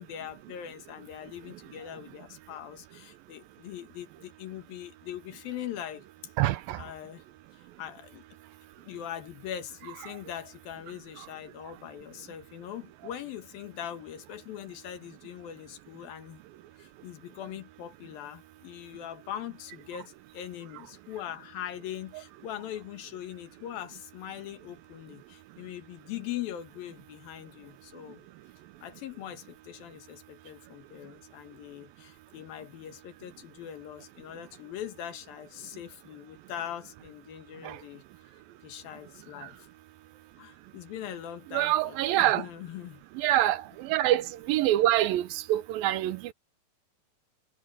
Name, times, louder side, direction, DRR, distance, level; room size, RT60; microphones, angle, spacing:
voice 1, 0.0-6.1 6.8-7.2 7.8-8.3 8.8-16.4 16.8-28.3 28.8-38.0 38.6-39.7 40.4-43.0, left 11 dB, 80° left, 3.2 m, -41 dB
voice 2, 6.4-6.8 10.0-10.1 22.1-22.2 37.6-37.8 39.4-39.5 41.5-42.5 43.1-46.3, right 14 dB, 85° right, 2.5 m, -26 dB
omnidirectional pair, 4.3 m